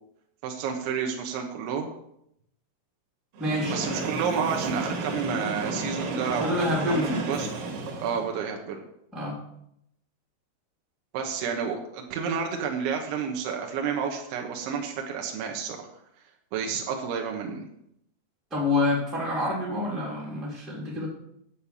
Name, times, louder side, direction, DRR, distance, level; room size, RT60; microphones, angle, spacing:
voice 1, 0.4-1.9 3.7-7.5 8.0-8.8 11.1-15.9 16.5-17.7, right 6 dB, 80° right, 2 dB, 3.6 m, -30 dB
Train, 3.3-8.4, right 3 dB, 60° right, 3.8 m, -32 dB
voice 2, 3.4-3.8 6.4-7.2 9.1-9.4 18.5-21.1, left 2 dB, ahead, -5 dB, 2.8 m, -27 dB
8.8 x 8.8 x 7.1 m, 0.76 s
omnidirectional pair, 5.4 m